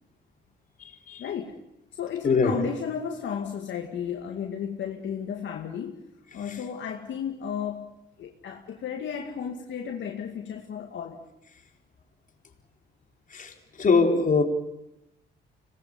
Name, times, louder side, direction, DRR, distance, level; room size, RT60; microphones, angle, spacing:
voice 1, 1.2-1.5 2.0-6.0 6.3-7.9 8.2-11.2, left 8 dB, 70° left, 2 dB, 2.2 m, -33 dB
voice 2, 2.2-2.6 13.3-13.5 13.8-14.4, left 4 dB, 40° left, 2 dB, 4.2 m, -21 dB
26.0 x 20.0 x 8.7 m, 0.90 s
cardioid pair, 90°, 20 cm